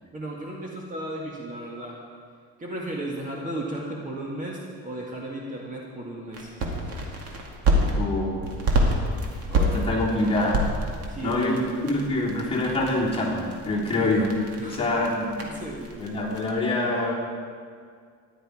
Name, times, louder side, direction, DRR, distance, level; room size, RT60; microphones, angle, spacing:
voice 1, 0.1-2.0 2.6-6.5 11.1-11.6 14.6-15.0 15.4-16.0, right 1 dB, 25° right, -2 dB, 1.8 m, -35 dB
sound 1, 6.3-7.9 8.4-16.5, right 1 dB, 50° right, 2.2 m, -28 dB
voice 2, 8.0-8.4 9.5-10.7 11.2-14.3 14.6-15.4 16.0-17.1, left 2 dB, 20° left, -6 dB, 3.5 m, -25 dB
14.5 x 11.0 x 4.9 m, 2.1 s
cardioid pair, 140°, 31 cm